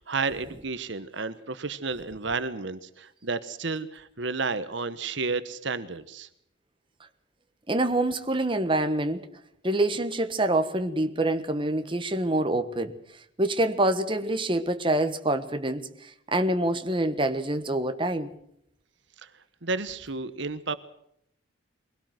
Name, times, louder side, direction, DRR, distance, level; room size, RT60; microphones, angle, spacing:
voice 1, 0.0-6.3 19.2-19.3 19.6-20.8, right 4 dB, 65° right, 1.2 m, -31 dB
voice 2, 7.7-9.2 9.6-12.9 13.4-18.3, right 1 dB, 25° right, 1.4 m, -26 dB
23.5 x 18.0 x 7.8 m
head